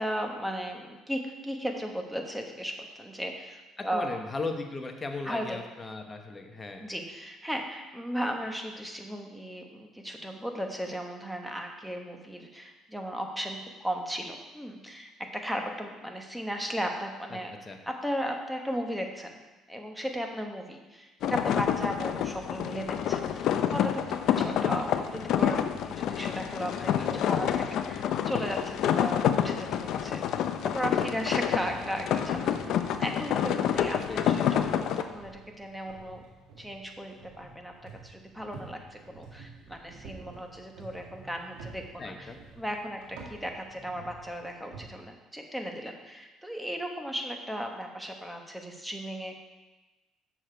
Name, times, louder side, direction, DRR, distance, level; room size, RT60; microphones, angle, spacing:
voice 1, 0.0-4.2 5.2-5.6 6.8-17.5 17.9-19.4 19.7-30.2 30.6-35.3 35.6-36.2 36.6-42.3 42.6-49.3, equal, ahead, 3 dB, 1.1 m, -36 dB
voice 2, 3.8-6.8 17.3-17.8 26.8-27.3 33.8-34.2 42.0-42.4, left 3 dB, 20° left, 4 dB, 0.9 m, -37 dB
sound 1, 21.2-35.0, left 9 dB, 65° left, 0.5 m, -28 dB
sound 2, 31.6-44.9, right 4 dB, 85° right, 1.7 m, -50 dB
7.2 x 6.5 x 4.4 m, 1.1 s
cardioid pair, 110°, 0 cm